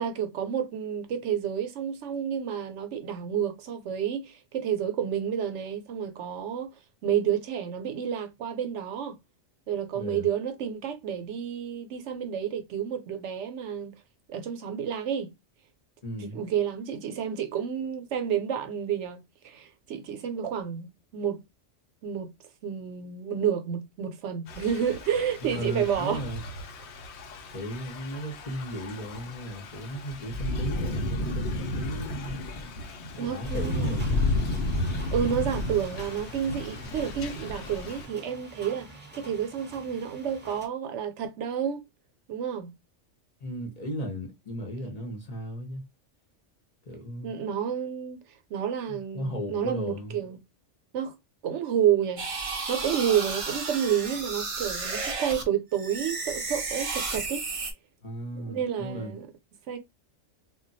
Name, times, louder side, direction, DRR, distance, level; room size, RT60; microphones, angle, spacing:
voice 1, 0.0-6.7 7.0-9.2 9.7-13.9 14.3-15.3 16.2-21.4 22.0-22.3 22.6-26.2 33.2-33.9 35.1-41.8 42.3-42.7 47.2-48.2 48.5-50.4 50.9-51.2 51.4-52.3 52.7-57.4 58.3-59.3 59.7-59.8, right 8 dB, 75° right, 0.9 m, -30 dB
voice 2, 9.9-10.3 16.0-16.4 25.4-26.4 27.5-32.6 33.1-34.3 43.4-45.8 46.9-47.3 48.9-50.2 58.0-59.1, equal, 40° left, 0.8 m, -36 dB
Thunder / Rain, 24.5-38.1, left 2 dB, 70° left, 0.9 m, -33 dB
sound 1, 33.4-40.7, right 1 dB, 10° right, 1.0 m, -46 dB
sound 2, 52.2-55.4 55.7-57.7, right 4 dB, 40° right, 0.5 m, -33 dB
2.2 x 2.2 x 3.9 m
omnidirectional pair, 1.2 m